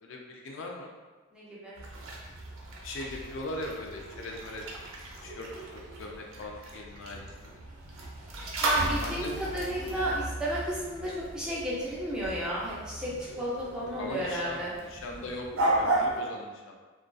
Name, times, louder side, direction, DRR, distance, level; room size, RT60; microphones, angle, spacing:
voice 1, 0.0-0.9 2.8-4.7 5.2-7.5 9.0-9.3 14.0-16.7, left 2 dB, 65° left, 1 dB, 0.3 m, -40 dB
voice 2, 1.3-1.8 8.6-13.1 13.4-14.7, right 1 dB, 5° right, -7 dB, 0.4 m, -33 dB
sound 1, 1.7-16.2, right 1 dB, 75° right, 0.5 m, -35 dB
2.5 x 2.1 x 2.2 m, 1.3 s
head